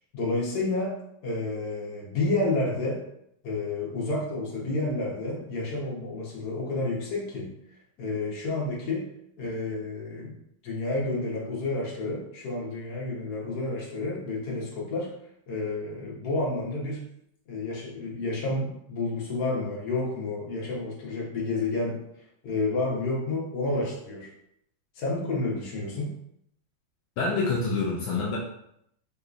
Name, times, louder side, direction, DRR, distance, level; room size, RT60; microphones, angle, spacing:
voice 1, 0.1-0.9 1.2-3.0 3.4-7.5 8.0-9.0 9.4-10.4 10.6-15.1 15.5-17.0 17.5-22.0 22.4-24.3 24.9-26.1, left 2 dB, 55° left, -4 dB, 1.4 m, -30 dB
voice 2, 27.2-28.4, left 3 dB, 80° left, -4 dB, 1.4 m, -26 dB
3.8 x 2.8 x 2.4 m, 0.73 s
omnidirectional pair, 2.3 m